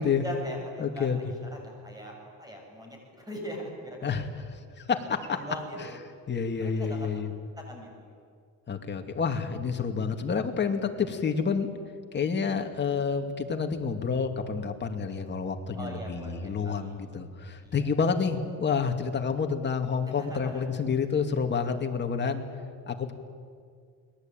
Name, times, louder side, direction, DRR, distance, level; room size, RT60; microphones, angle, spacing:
voice 1, 0.2-4.1 5.1-6.0 6.7-7.1 7.6-8.2 15.8-17.0 17.6-17.9 20.2-20.7, equal, 10° right, 1 dB, 7.2 m, -41 dB
voice 2, 0.8-1.2 4.0-4.3 4.8-5.4 5.8-5.9 6.3-7.3 8.7-11.7 12.1-22.4 22.9-23.1, left 5 dB, 30° left, 5 dB, 2.5 m, -29 dB
29.5 x 22.0 x 9.2 m, 2.1 s
cardioid pair, 140°, 37 cm